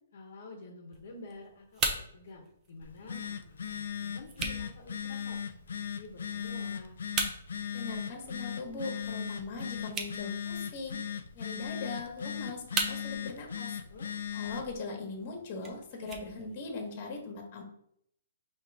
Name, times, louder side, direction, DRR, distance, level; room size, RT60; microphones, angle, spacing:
voice 1, 0.1-5.4 5.7-6.9 13.9-14.1, left 2 dB, 65° left, 1 dB, 1.0 m, -49 dB
sound 1, 0.9-16.9, right 4 dB, 20° right, 0.6 m, -41 dB
Telephone, 2.8-14.8, left 8 dB, 80° left, 0.4 m, -38 dB
voice 2, 7.7-11.0 11.3-13.8 14.3-17.6, left 3 dB, 40° left, 2 dB, 1.3 m, -40 dB
4.9 x 2.9 x 3.5 m, 0.72 s
hypercardioid pair, 155°, 0 cm